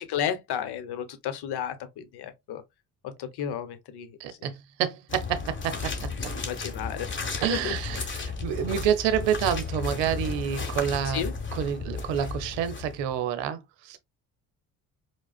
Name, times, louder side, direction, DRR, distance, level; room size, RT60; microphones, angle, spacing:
voice 1, 0.0-2.6 3.0-4.5 6.4-7.1 7.3-7.8 11.0-11.3, left 9 dB, 60° left, 0.8 m, -33 dB
voice 2, 4.2-6.0 7.4-11.2 11.5-14.0, right 9 dB, 75° right, 0.7 m, -28 dB
Footsteps Walking Boot Mud and Long Grass, 5.1-13.2, left 4 dB, 25° left, 1.1 m, -34 dB
4.7 x 2.1 x 2.3 m
hypercardioid pair, 55°, 44 cm